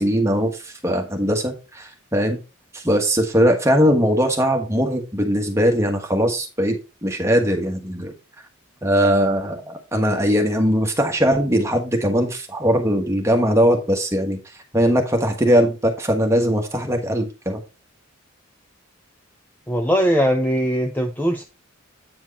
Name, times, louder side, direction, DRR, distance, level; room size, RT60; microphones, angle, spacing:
voice 1, 0.0-2.4 2.7-6.8 7.0-8.1 8.8-14.4 14.7-17.6, equal, 15° right, 1.2 m, -20 dB
voice 2, 19.7-21.4, equal, 10° left, 0.5 m, -20 dB
8.7 x 4.6 x 4.1 m
head